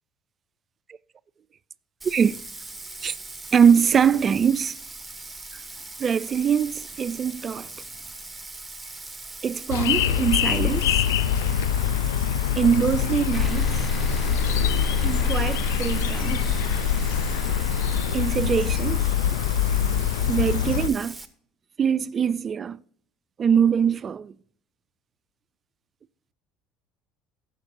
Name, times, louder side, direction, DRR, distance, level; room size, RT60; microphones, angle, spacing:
Bathtub (filling or washing), 2.0-21.3, right 2 dB, 10° right, 1.1 m, -40 dB
voice 1, 2.0-2.4 3.0-3.1 3.5-4.8 6.0-7.7 9.4-10.9 12.6-13.7 15.0-16.6 18.1-19.1 20.3-21.2 21.8-22.8 23.4-24.3, right 7 dB, 35° right, 0.3 m, -23 dB
sound 1, 9.7-20.9, left 9 dB, 75° left, 0.5 m, -24 dB
sound 2, 13.3-20.5, right 2 dB, 20° left, 0.6 m, -32 dB
17.5 x 6.6 x 2.7 m
hypercardioid pair, 65°, 0 cm